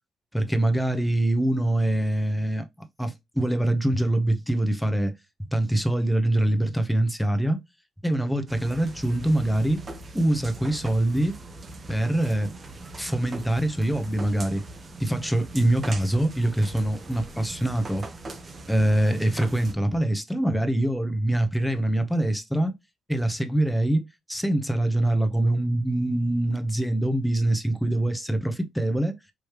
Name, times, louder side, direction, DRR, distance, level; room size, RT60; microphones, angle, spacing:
voice 1, 0.3-5.1 5.5-7.6 8.0-9.8 10.1-11.3 11.9-12.5 13.0-14.6 15.0-18.1 18.7-22.7 23.1-24.0 24.3-29.1, right 1 dB, ahead, 0.9 m, -24 dB
sound 1, 8.5-19.7, right 2 dB, 35° right, 0.9 m, -41 dB
4.9 x 3.1 x 3.0 m
cardioid pair, 90°, 0 cm